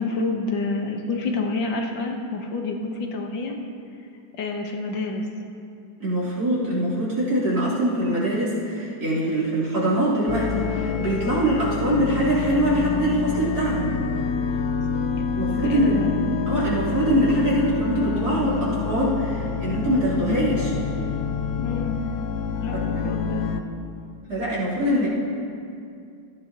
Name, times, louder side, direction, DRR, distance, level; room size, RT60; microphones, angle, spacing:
voice 1, 0.0-3.6 4.4-5.3 15.5-16.1 21.6-22.0 22.6-23.5, left 3 dB, 85° left, 2 dB, 1.9 m, -28 dB
voice 2, 6.0-13.9 15.4-16.0 16.5-20.7 22.7-22.9 24.3-25.1, right 1 dB, 60° right, -9 dB, 3.9 m, -23 dB
sound 1, 10.3-23.6, left 5 dB, 65° left, 1.1 m, -27 dB
16.5 x 15.0 x 3.0 m, 2.4 s
omnidirectional pair, 2.0 m